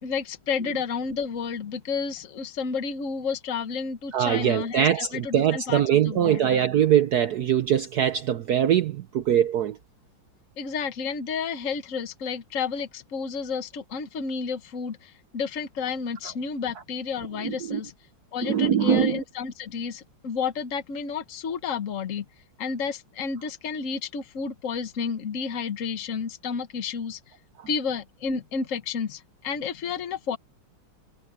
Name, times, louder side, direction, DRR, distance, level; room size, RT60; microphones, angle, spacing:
voice 1, 0.0-6.4 10.6-17.9 18.3-22.2 22.6-27.2 27.7-30.4, left 5 dB, 45° left, 1.5 m, -31 dB
voice 2, 4.1-9.8 17.4-17.8 18.4-19.2 27.6-27.7, right 9 dB, 60° right, 1.2 m, -22 dB
omnidirectional pair, 2.1 m